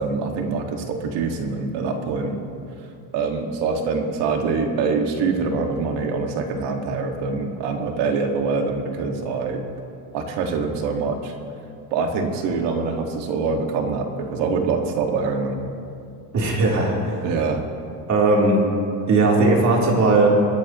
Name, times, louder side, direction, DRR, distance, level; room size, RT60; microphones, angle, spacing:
voice 1, 0.0-2.4 3.1-9.6 10.1-11.3 11.9-15.6 17.2-17.6, right 4 dB, 65° right, 3 dB, 2.0 m, -24 dB
voice 2, 16.3-17.2 18.1-18.6 19.1-20.3, right 2 dB, 40° right, -2 dB, 3.4 m, -18 dB
27.5 x 11.0 x 3.1 m, 2.5 s
cardioid pair, 130°, 44 cm